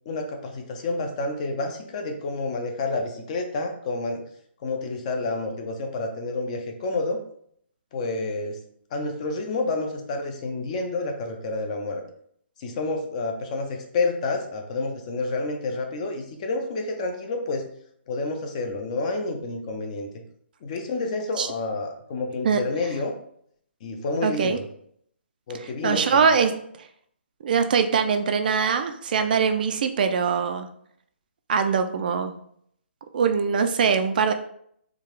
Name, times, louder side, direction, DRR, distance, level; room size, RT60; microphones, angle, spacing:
voice 1, 0.1-4.2 4.6-7.2 7.9-8.6 8.9-12.0 12.6-17.7 18.1-20.1 20.6-23.2 23.8-24.6 25.5-26.3, left 3 dB, 35° left, 4 dB, 0.6 m, -29 dB
voice 2, 24.2-24.6 25.8-26.9 27.4-30.7 31.5-32.3 33.1-34.3, right 6 dB, 45° right, 7 dB, 0.4 m, -22 dB
3.6 x 2.4 x 3.2 m, 0.66 s
hypercardioid pair, 150°, 6 cm